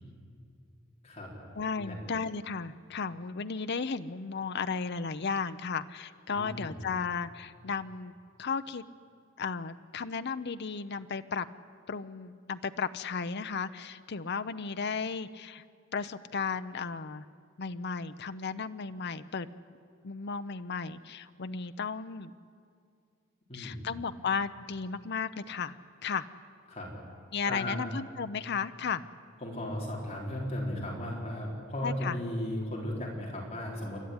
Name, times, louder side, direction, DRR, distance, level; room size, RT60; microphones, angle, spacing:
voice 1, 1.5-8.1 8.4-8.8 9.4-11.5 11.9-15.6 15.9-17.2 17.6-19.5 20.0-22.3 23.5-25.8 26.0-26.3 27.3-29.0 31.8-32.2, left 5 dB, 55° left, 11 dB, 0.7 m, -34 dB
voice 2, 6.4-6.8 23.5-23.9 26.7-26.9 27.4-27.8 29.4-34.0, left 1 dB, 30° left, -2 dB, 4.1 m, -36 dB
29.0 x 13.0 x 9.6 m, 2.3 s
head